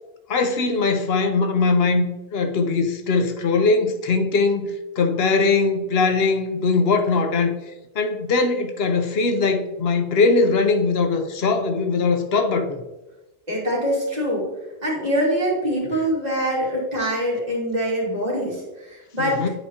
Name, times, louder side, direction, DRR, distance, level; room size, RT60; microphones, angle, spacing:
voice 1, 0.3-4.7 5.0-7.5 8.0-12.8 19.2-19.5, left 4 dB, 75° left, 6 dB, 0.9 m, -21 dB
voice 2, 13.5-14.5 14.8-19.5, equal, 40° right, -5 dB, 2.4 m, -24 dB
9.7 x 4.7 x 2.8 m, 1.1 s
omnidirectional pair, 1.0 m